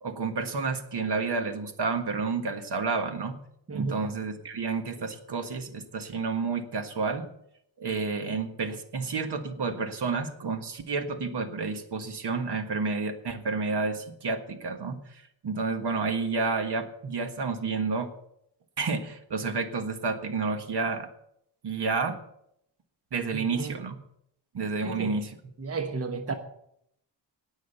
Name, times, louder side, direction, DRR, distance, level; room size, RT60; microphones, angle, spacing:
voice 1, 0.0-3.4 3.7-7.3 7.8-15.0 15.4-18.1 18.8-21.1 21.6-22.2 23.1-24.0 24.5-25.4, right 4 dB, 60° right, 1.6 m, -30 dB
voice 2, 3.7-4.0 23.3-23.8 24.8-25.2 25.6-26.3, right 4 dB, 30° right, 1.1 m, -33 dB
18.5 x 6.5 x 6.7 m
wide cardioid pair, 150°, 46 cm